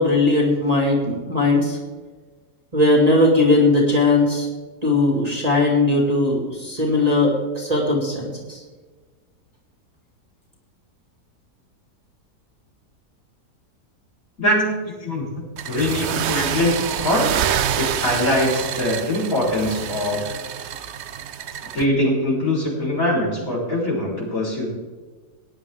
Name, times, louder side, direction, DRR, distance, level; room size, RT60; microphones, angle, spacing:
voice 1, 0.0-1.8 2.7-4.5 4.8-8.6, left 2 dB, 25° right, -2 dB, 2.3 m, -19 dB
voice 2, 14.4-17.2 17.8-20.3 21.7-24.7, left 1 dB, 50° left, -6 dB, 4.9 m, -22 dB
sound 1, 15.6-21.8, right 9 dB, 65° right, 0.7 m, -27 dB
19.0 x 10.0 x 3.6 m, 1.4 s
omnidirectional pair, 1.8 m